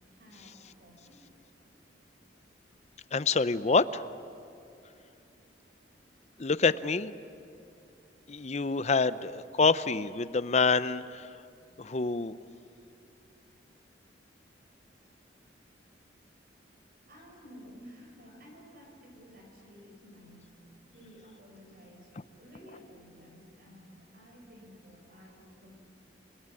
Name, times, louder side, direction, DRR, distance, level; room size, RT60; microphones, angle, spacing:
voice 1, 0.1-1.2 17.1-20.5 20.9-25.7, equal, 55° right, 1 dB, 6.4 m, -53 dB
voice 2, 3.1-4.0 6.4-7.1 8.3-11.3 11.8-12.4, left 4 dB, 40° left, 14 dB, 0.7 m, -27 dB
29.5 x 19.0 x 9.8 m, 2.7 s
head